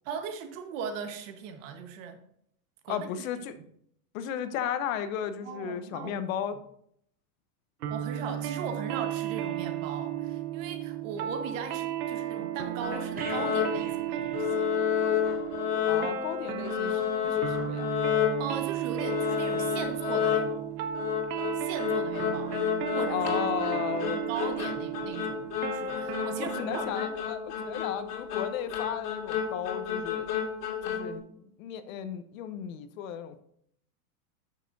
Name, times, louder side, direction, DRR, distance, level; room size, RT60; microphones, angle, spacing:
voice 1, 0.0-2.2 2.8-3.3 5.4-6.2 7.9-14.7 18.4-20.6 21.5-22.6 22.9-27.2 27.4-27.7, right 6 dB, 55° right, 1.4 m, -39 dB
voice 2, 2.9-3.5 4.1-6.6 15.8-17.9 23.1-24.3 26.4-30.3 30.8-33.4, left 9 dB, 60° left, 0.9 m, -34 dB
sound 1, 7.8-26.9, right 10 dB, 75° right, 1.1 m, -34 dB
sound 2, 12.8-14.0 14.3-16.4 16.6-18.6 19.0-31.2, left 9 dB, 80° left, 2.4 m, -31 dB
sound 3, 13.2-15.1 15.4-15.6, right 6 dB, 20° right, 0.8 m, -46 dB
9.8 x 6.6 x 2.7 m
supercardioid pair, 140°, 46 cm